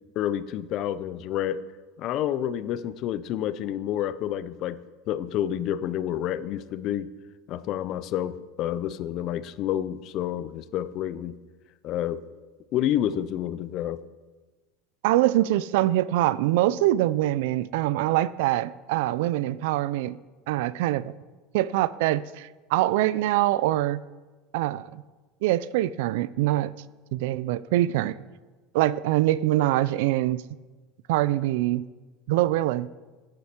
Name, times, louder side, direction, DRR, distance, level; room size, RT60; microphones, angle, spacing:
voice 1, 0.2-1.6 2.0-4.8 5.1-7.1 7.5-11.3 11.8-12.2 12.7-14.0, left 11 dB, 45° left, 0.4 m, -29 dB
voice 2, 15.0-20.2 20.5-21.1 21.5-24.0 24.5-25.0 25.4-26.7 27.1-28.2 28.7-30.4 31.1-31.8 32.3-32.9, right 15 dB, 75° right, 0.3 m, -24 dB
9.2 x 8.4 x 4.4 m
supercardioid pair, 150°, 0 cm